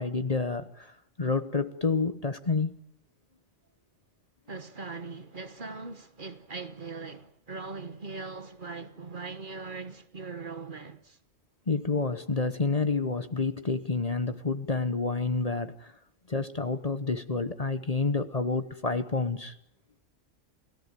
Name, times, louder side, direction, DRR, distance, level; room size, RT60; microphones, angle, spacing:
voice 1, 0.0-2.8 11.7-15.9 16.3-19.6, left 3 dB, 30° left, 1.1 m, -29 dB
voice 2, 4.5-11.2, right 4 dB, 45° right, 1.3 m, -40 dB
28.5 x 17.0 x 9.1 m
omnidirectional pair, 1.3 m